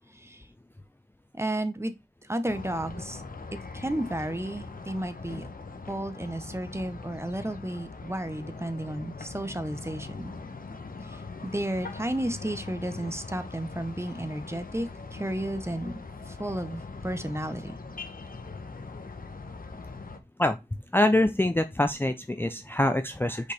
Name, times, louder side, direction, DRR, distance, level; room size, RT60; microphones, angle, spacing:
voice 1, 1.3-1.9 2.3-3.2 3.7-5.4 5.9-10.3 11.1-15.9 16.3-17.7, right 1 dB, 15° right, 0.9 m, -33 dB
sound 1, 2.5-20.2, left 4 dB, 50° left, 1.0 m, -41 dB
voice 2, 20.9-23.5, left 1 dB, 10° left, 0.5 m, -25 dB
6.4 x 5.2 x 3.4 m
wide cardioid pair, 70°, 18 cm